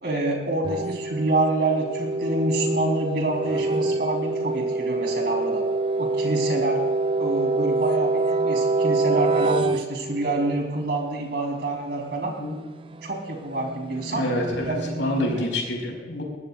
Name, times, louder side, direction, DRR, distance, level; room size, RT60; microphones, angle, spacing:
voice 1, 0.0-5.6 6.0-6.8 7.2-12.3 13.0-15.4, right 2 dB, 55° right, 0 dB, 3.8 m, -27 dB
sound 1, 0.6-10.6 12.8-15.4, right 3 dB, 30° right, 0.4 m, -26 dB
voice 2, 14.1-16.2, left 1 dB, 80° left, 0 dB, 5.1 m, -27 dB
21.5 x 18.0 x 2.5 m, 1.3 s
head